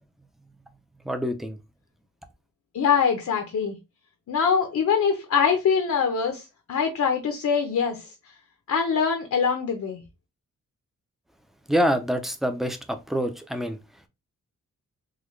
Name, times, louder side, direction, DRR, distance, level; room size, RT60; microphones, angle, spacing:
voice 1, 1.0-1.6 11.7-13.8, equal, ahead, 0.5 m, -26 dB
voice 2, 2.7-3.7 4.3-8.1 8.7-10.0, left 6 dB, 65° left, 0.7 m, -23 dB
3.8 x 2.3 x 3.1 m
wide cardioid pair, 125°, 31 cm